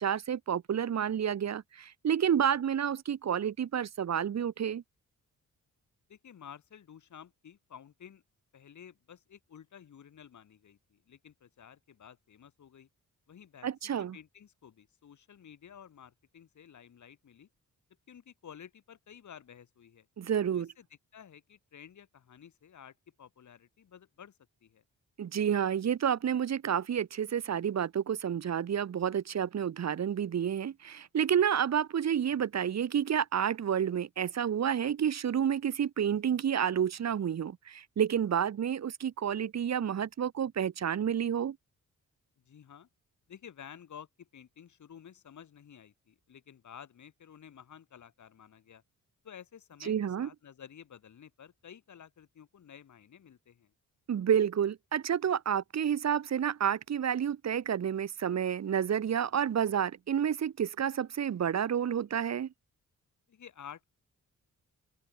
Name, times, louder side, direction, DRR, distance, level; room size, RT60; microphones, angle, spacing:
voice 1, 0.0-4.8 13.6-14.2 20.2-20.7 25.2-41.6 49.8-50.3 54.1-62.5, right 8 dB, 55° right, 1.3 m, -30 dB
voice 2, 6.1-8.2 8.5-12.9 13.3-17.5 18.1-20.1 20.5-20.9 21.1-24.8 42.4-42.9 43.3-48.8 49.2-53.7 63.3-63.9, left 8 dB, 65° left, 3.8 m, -52 dB
open air
wide cardioid pair, 130°, 32 cm